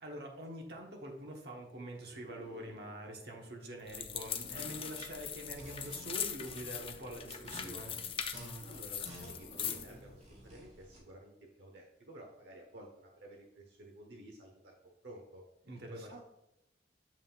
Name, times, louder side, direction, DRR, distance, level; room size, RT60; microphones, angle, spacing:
voice 1, 0.0-8.0 15.6-16.2, right 1 dB, 65° right, 1 dB, 1.2 m, -45 dB
sound 1, 2.0-6.1 6.8-10.8, left 1 dB, 70° left, 1.0 m, -59 dB
sound 2, 3.8-11.0, equal, 40° right, 1.3 m, -52 dB
sound 3, 3.9-9.9, left 8 dB, 30° left, 0.4 m, -41 dB
voice 2, 8.6-11.3 11.6-14.7 15.0-15.4 15.9-16.2, right 1 dB, 80° right, 1 dB, 0.9 m, -52 dB
7.4 x 5.6 x 2.4 m, 0.87 s
head